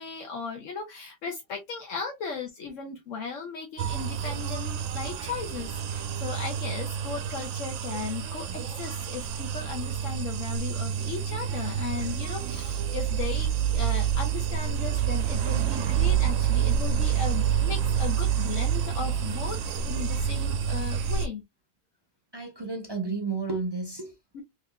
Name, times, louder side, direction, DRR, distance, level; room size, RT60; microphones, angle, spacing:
voice 1, 0.0-19.6 19.9-21.4 24.3-24.4, left 5 dB, 75° left, 1.1 m, -36 dB
sound 1, 3.8-21.3, right 8 dB, 80° right, 0.9 m, -28 dB
voice 2, 22.3-24.2, right 4 dB, 30° right, 0.4 m, -33 dB
3.6 x 3.1 x 2.2 m
omnidirectional pair, 1.3 m